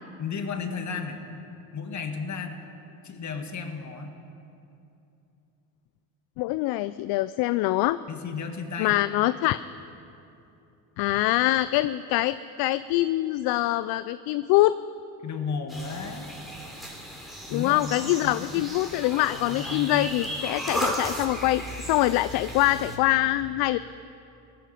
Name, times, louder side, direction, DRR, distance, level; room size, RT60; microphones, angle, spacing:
voice 1, 0.2-1.2 1.7-2.6 3.0-4.1 8.1-9.0 15.2-16.3 17.5-17.9 18.2-18.6 19.2-20.1, left 5 dB, 40° left, 5 dB, 2.0 m, -34 dB
voice 2, 6.4-8.0 8.8-9.6 11.0-14.7 17.5-21.6 21.9-23.8, left 16 dB, 55° left, 15 dB, 0.5 m, -24 dB
sound 1, 15.7-23.0, equal, ahead, 3.2 m, -35 dB
17.0 x 14.5 x 5.1 m, 2.7 s
hypercardioid pair, 75°, 44 cm